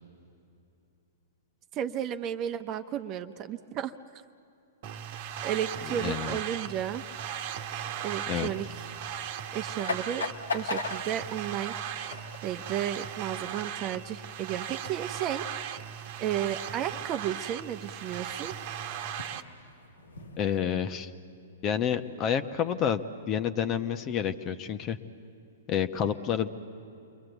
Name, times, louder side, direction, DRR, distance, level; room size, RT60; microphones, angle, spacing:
voice 1, 1.7-3.9 5.4-7.0 8.0-8.7 9.5-11.7 12.0-15.5 16.2-18.6, right 10 dB, 35° right, 9 dB, 1.0 m, -33 dB
sound 1, 4.8-19.4, right 9 dB, 50° right, 1.3 m, -37 dB
voice 2, 6.0-6.4 8.3-8.5 20.4-21.1 21.6-25.0 25.7-26.5, left 8 dB, 35° left, 10 dB, 1.1 m, -29 dB
sound 2, 9.5-20.6, left 3 dB, 85° left, 2.1 m, -41 dB
29.0 x 22.5 x 8.2 m, 2.8 s
hypercardioid pair, 115°, 0 cm